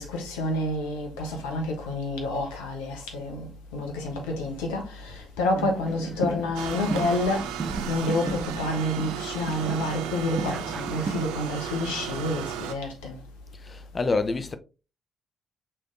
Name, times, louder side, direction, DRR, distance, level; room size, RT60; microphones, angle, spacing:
voice 1, 0.0-7.5 7.9-13.1, left 1 dB, 80° left, 0.9 m, -29 dB
sound 1, 5.5-11.2, right 3 dB, 40° right, 0.8 m, -35 dB
sound 2, 6.5-12.7, right 9 dB, 75° right, 0.4 m, -35 dB
voice 2, 13.6-14.5, left 3 dB, 40° left, 0.6 m, -27 dB
5.5 x 3.3 x 2.6 m
figure-of-eight pair, 40°, 0 cm